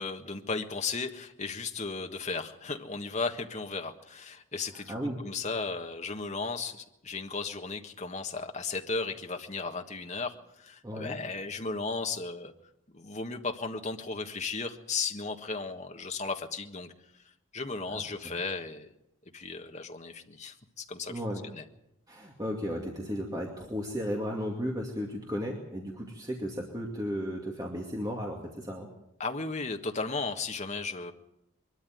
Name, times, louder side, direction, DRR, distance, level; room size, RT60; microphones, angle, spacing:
voice 1, 0.0-12.5 12.9-17.2 17.5-18.9 19.3-21.1 21.5-21.6 29.2-31.1, left 4 dB, 35° left, 5 dB, 1.5 m, -35 dB
voice 2, 4.7-5.2 10.8-11.2 17.9-18.0 21.1-21.4 22.1-28.9, equal, 15° right, 0 dB, 2.3 m, -35 dB
22.5 x 13.0 x 9.4 m, 0.84 s
head